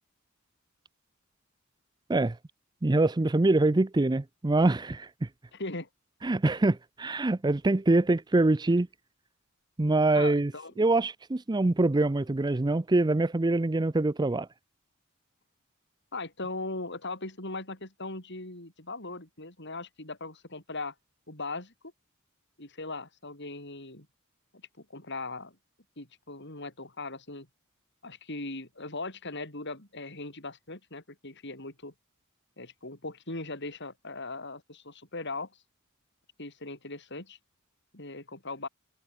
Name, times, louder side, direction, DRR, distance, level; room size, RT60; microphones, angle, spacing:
voice 1, 2.8-5.3 6.2-8.9 9.8-10.5 10.8-14.5, right 2 dB, 20° right, 0.5 m, -24 dB
voice 2, 5.5-5.9 10.1-10.7 16.1-20.9 21.3-21.7 22.6-24.1 24.5-25.6 26.0-27.5 28.0-31.9 32.6-35.5 36.4-37.4 37.9-38.7, left 3 dB, 55° left, 6.8 m, -39 dB
head